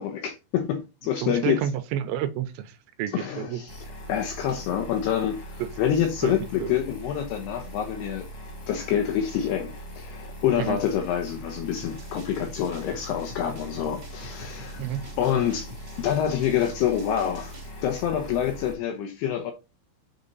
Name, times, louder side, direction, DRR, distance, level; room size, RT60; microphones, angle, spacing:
voice 1, 0.0-1.6 3.1-8.3 8.7-14.8 15.2-15.7 16.0-17.5 17.8-19.5, left 9 dB, 75° left, 2.4 m, -27 dB
voice 2, 1.2-3.6 5.6-5.7 6.2-6.3 6.6-6.7 10.6-10.8 14.8-15.0, right 10 dB, 80° right, 2.8 m, -30 dB
sound 1, 3.7-18.7, equal, 35° left, 3.0 m, -41 dB
sound 2, 11.8-17.7, right 1 dB, 25° right, 1.6 m, -46 dB
7.2 x 6.5 x 4.0 m
omnidirectional pair, 5.6 m